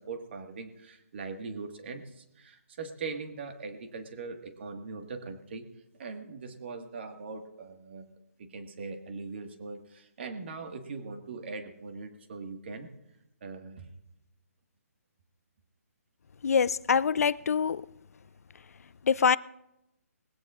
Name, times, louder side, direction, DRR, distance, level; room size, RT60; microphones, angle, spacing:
voice 1, 0.0-5.7 6.0-8.1 8.4-12.9 13.4-13.9, right 4 dB, 45° right, 1.6 m, -41 dB
voice 2, 16.4-17.8 19.0-19.4, left 6 dB, 70° left, 0.4 m, -24 dB
20.5 x 16.0 x 2.4 m
hypercardioid pair, 165°, 9 cm